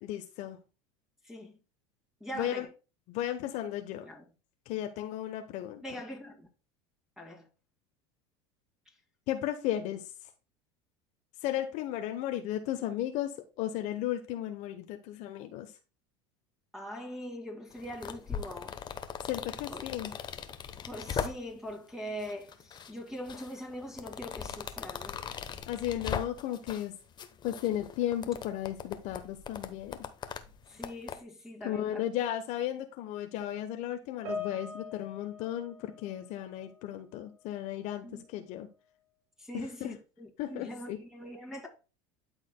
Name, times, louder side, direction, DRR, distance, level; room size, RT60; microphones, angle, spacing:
voice 1, 0.0-0.6 2.3-2.7 3.1-4.1 4.7-6.0 9.3-10.3 11.4-15.8 19.2-20.1 25.7-26.9 27.4-30.0 31.6-38.7 39.5-40.0 40.4-41.0, left 12 dB, 60° left, 0.9 m, -35 dB
voice 2, 1.2-1.6 2.2-2.7 4.0-4.2 5.8-6.5 7.2-7.5 16.7-18.8 19.7-19.8 20.8-25.2 30.7-32.0 38.0-38.2 39.4-41.7, equal, 5° right, 2.3 m, -42 dB
sound 1, 17.7-21.7 22.2-22.9 23.3-26.9 27.2-31.2, left 7 dB, 30° left, 0.9 m, -39 dB
Piano, 34.3-36.9 37.2-37.5 38.3-38.4, left 3 dB, 65° right, 4.3 m, -42 dB
12.5 x 4.9 x 2.2 m
supercardioid pair, 100°, 14 cm